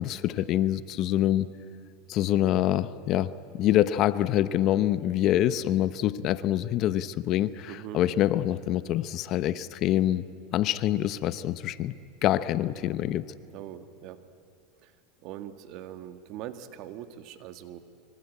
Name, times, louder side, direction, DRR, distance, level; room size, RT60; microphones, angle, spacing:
voice 1, 0.0-1.5 2.1-10.2 10.5-11.9 12.2-13.2, left 12 dB, 45° left, 15 dB, 0.9 m, -25 dB
voice 2, 7.7-8.0 13.5-14.2 14.8-14.9 15.2-17.8, right 11 dB, 55° right, 9 dB, 1.8 m, -42 dB
24.5 x 24.0 x 8.5 m, 2.5 s
supercardioid pair, 125°, 0 cm